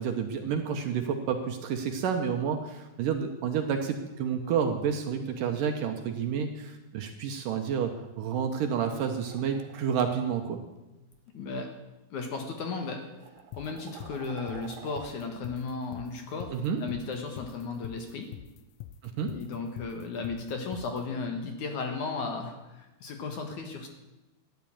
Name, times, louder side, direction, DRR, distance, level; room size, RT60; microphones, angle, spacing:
voice 1, 0.0-10.6 16.5-16.8 19.0-19.3, right 7 dB, 70° right, 5 dB, 2.3 m, -30 dB
sound 1, 8.9-10.0 11.1-11.3 12.2-12.3 12.9-15.1, right 8 dB, 85° right, 3.2 m, -48 dB
voice 2, 11.3-11.7 12.1-18.3 19.3-23.9, left 4 dB, 60° left, 4 dB, 2.5 m, -35 dB
sound 2, 13.5-21.0, left 12 dB, 90° left, 1.9 m, -44 dB
13.5 x 10.5 x 8.6 m, 1.0 s
omnidirectional pair, 4.6 m